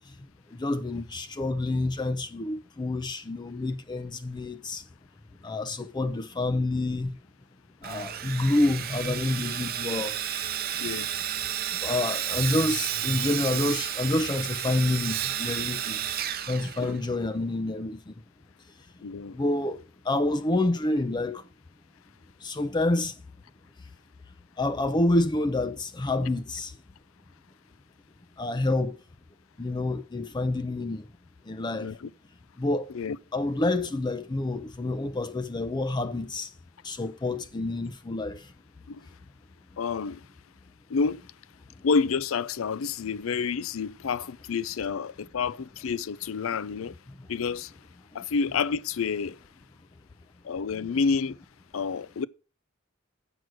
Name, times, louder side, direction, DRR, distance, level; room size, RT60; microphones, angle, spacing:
voice 1, 0.5-4.8 5.4-7.2 7.8-10.2 11.8-16.0 16.5-18.1 19.3-21.4 22.4-23.1 24.6-26.7 28.4-29.0 29.6-31.0 31.5-31.9 32.6-32.9 33.3-36.5 36.8-38.5, left 2 dB, 20° left, 0.5 m, -28 dB
Sawing, 7.8-17.3, right 10 dB, 50° right, 0.6 m, -32 dB
voice 2, 19.0-19.4 31.8-32.1 32.9-33.2 38.9-39.0 39.8-40.2 40.9-41.2 41.8-46.9 47.3-47.7 48.1-49.4 50.4-51.4 51.7-52.3, left 5 dB, 85° left, 0.5 m, -29 dB
7.8 x 6.1 x 6.3 m
head